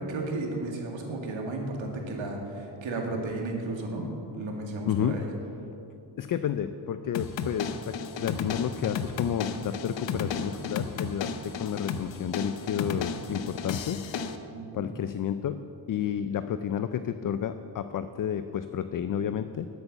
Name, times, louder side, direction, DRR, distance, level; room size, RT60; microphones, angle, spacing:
voice 1, 0.1-4.1 4.3-5.3 14.5-14.9, right 2 dB, 80° right, 1 dB, 2.2 m, -33 dB
voice 2, 4.9-5.2 6.2-14.1 14.7-15.6 15.9-19.7, left 9 dB, 45° left, 11 dB, 0.4 m, -31 dB
sound 1, 7.1-14.4, left 6 dB, 70° left, 0.8 m, -34 dB
11.5 x 8.3 x 6.8 m, 2.7 s
wide cardioid pair, 110°, 46 cm